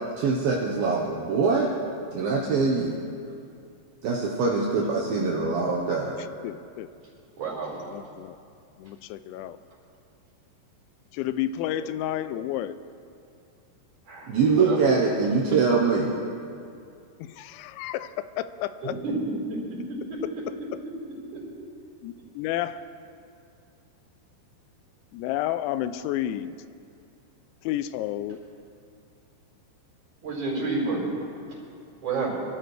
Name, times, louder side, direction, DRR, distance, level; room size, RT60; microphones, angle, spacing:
voice 1, 0.2-1.7 2.1-3.0 4.0-6.2 14.3-16.1, right 4 dB, 70° right, -3 dB, 2.5 m, -23 dB
voice 2, 6.2-6.9 7.7-8.4 8.8-9.6 11.1-12.7 17.2-19.0 22.0-22.8 25.1-26.6 27.6-28.4, left 12 dB, 90° left, 13 dB, 2.9 m, -31 dB
voice 3, 7.4-7.8 14.1-14.3 14.6-14.8 19.0-19.1 19.5-20.2 21.3-21.4 30.2-31.0 32.0-32.3, right 3 dB, 45° right, -4 dB, 5.8 m, -30 dB
25.0 x 13.5 x 3.3 m, 2.4 s
omnidirectional pair, 5.2 m